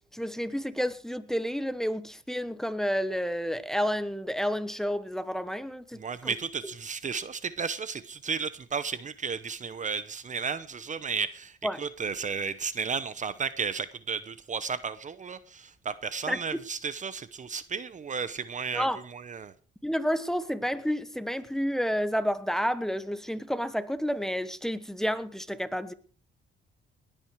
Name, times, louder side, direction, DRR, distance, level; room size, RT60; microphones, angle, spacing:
voice 1, 0.1-6.3 11.6-11.8 16.3-16.4 18.7-19.0 19.8-25.9, equal, ahead, 1.2 m, -30 dB
voice 2, 6.0-19.5, right 5 dB, 40° right, 0.9 m, -33 dB
19.5 x 9.1 x 4.8 m
cardioid pair, 90°, 20 cm